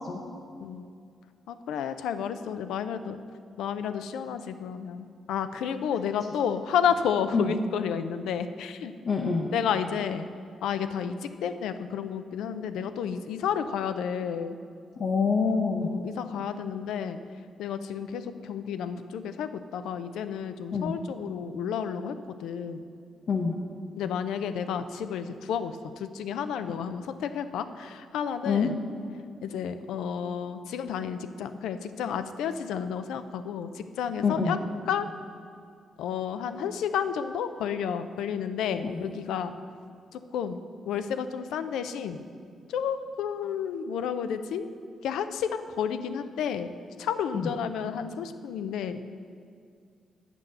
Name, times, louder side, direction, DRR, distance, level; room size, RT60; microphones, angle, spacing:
voice 1, 1.5-3.2 3.6-8.9 9.5-10.3 10.6-14.6 15.8-17.2 17.6-22.1 22.4-22.8 24.0-28.8 29.4-34.6 34.9-35.1 36.0-39.5 40.1-40.6 40.9-42.2 42.7-44.7 45.0-46.7 47.0-49.0, left 7 dB, 80° left, 10 dB, 0.4 m, -31 dB
voice 2, 9.0-9.5 15.0-15.9 20.7-20.9 23.3-23.6 28.4-28.7 34.2-34.6 38.8-39.0 47.3-47.5, left 5 dB, 65° left, -1 dB, 1.0 m, -26 dB
8.6 x 6.0 x 6.6 m, 2.3 s
supercardioid pair, 60°, 0 cm